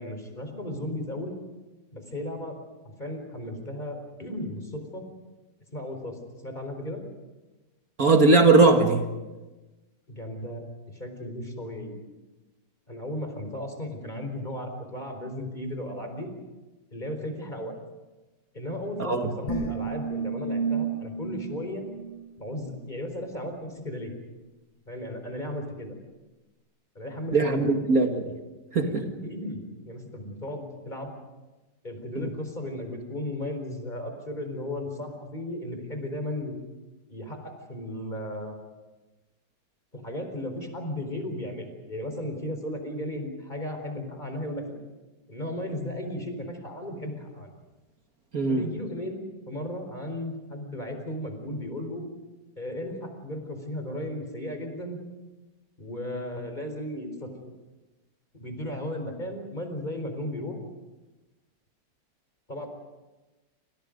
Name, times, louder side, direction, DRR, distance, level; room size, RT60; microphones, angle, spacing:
voice 1, 0.0-1.3 1.9-2.6 2.8-5.0 5.7-7.0 10.1-10.6 10.9-11.9 12.9-16.3 16.9-17.8 18.5-21.8 22.4-24.1 24.9-25.9 26.9-27.8 28.8-29.6 29.8-31.2 31.8-36.6 37.1-38.6 39.9-44.6 45.3-47.5 48.5-52.0 52.6-55.0 55.8-57.3 58.3-60.6 62.5-62.7, left 1 dB, 25° left, 5 dB, 4.4 m, -35 dB
voice 2, 8.0-9.1 19.0-19.3 27.3-28.3 28.7-28.9 32.2-32.3 48.3-48.6, right 3 dB, 50° right, 4 dB, 2.3 m, -20 dB
sound 1, 19.5-22.8, right 5 dB, 80° left, 8.5 m, -32 dB
28.0 x 26.5 x 5.2 m, 1.1 s
omnidirectional pair, 2.0 m